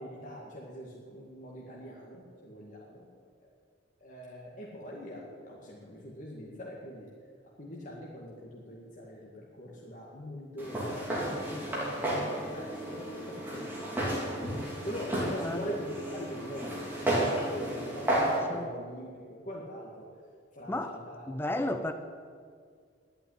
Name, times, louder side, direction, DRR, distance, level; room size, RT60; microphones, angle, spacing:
voice 1, 0.0-3.1 4.0-7.1 7.6-14.4 14.8-20.1 20.5-21.9, equal, 45° left, -4 dB, 2.0 m, -43 dB
Walk footsteps, 10.6-18.4, right 1 dB, 10° right, 3.8 m, -32 dB
voice 2, 11.3-12.0 15.4-15.7 18.5-18.7 20.7-21.0 21.3-21.9, left 1 dB, 10° left, 7 dB, 0.5 m, -34 dB
11.0 x 8.6 x 10.0 m, 2.1 s
head